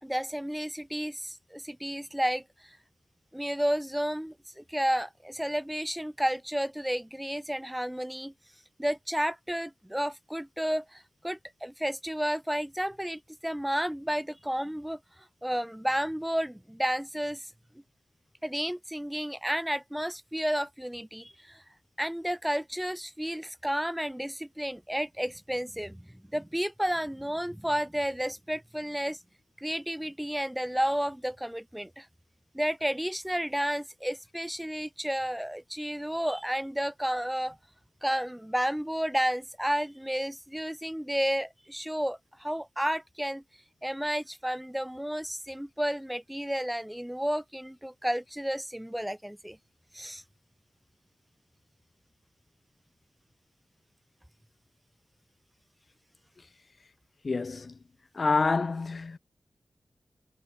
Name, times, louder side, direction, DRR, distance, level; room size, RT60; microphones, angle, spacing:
voice 1, 0.0-2.4 3.3-8.3 8.8-15.0 15.4-17.4 18.4-21.6 22.0-29.2 29.6-32.1 32.5-37.6 38.0-43.4 43.8-49.6 49.9-50.2, equal, 5° right, 1.8 m, -31 dB
voice 2, 57.2-57.8 58.1-59.2, left 4 dB, 55° left, 0.9 m, -27 dB
cardioid pair, 55°, 0 cm